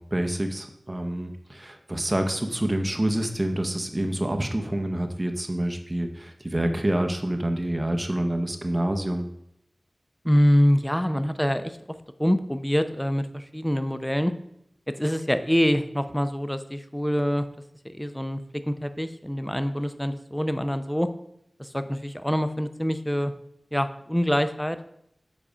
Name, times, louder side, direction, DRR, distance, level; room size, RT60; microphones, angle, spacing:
voice 1, 0.0-9.3, right 1 dB, 30° right, 5 dB, 0.8 m, -27 dB
voice 2, 10.2-11.8 12.2-14.3 14.9-17.5 17.8-21.1 21.6-23.3 23.7-24.8, equal, 5° left, 10 dB, 0.6 m, -25 dB
7.2 x 4.2 x 5.0 m, 0.77 s
cardioid pair, 40°, 0 cm